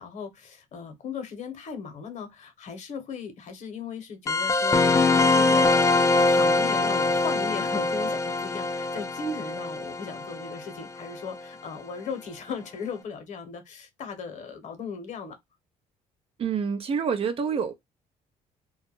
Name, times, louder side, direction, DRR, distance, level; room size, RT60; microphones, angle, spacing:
voice 1, 0.0-4.8 5.1-15.4, left 5 dB, 55° left, 0.9 m, -37 dB
sound 1, 4.3-11.4, left 3 dB, 20° left, 0.4 m, -23 dB
voice 2, 16.4-17.8, right 6 dB, 40° right, 0.5 m, -27 dB
2.2 x 2.1 x 3.0 m
cardioid pair, 85°, 14 cm